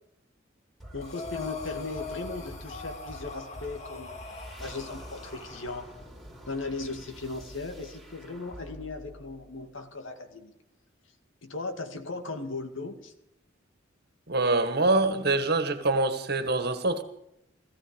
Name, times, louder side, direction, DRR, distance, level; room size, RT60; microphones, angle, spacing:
sound 1, 0.8-10.1, right 1 dB, ahead, 3.2 m, -47 dB
voice 1, 0.9-5.9 6.5-10.5 11.4-13.1, left 3 dB, 85° left, 2.3 m, -37 dB
Breathing, 1.0-5.9, left 4 dB, 35° left, 2.2 m, -41 dB
voice 2, 14.3-17.0, right 2 dB, 55° right, 1.8 m, -25 dB
17.5 x 15.5 x 5.4 m
head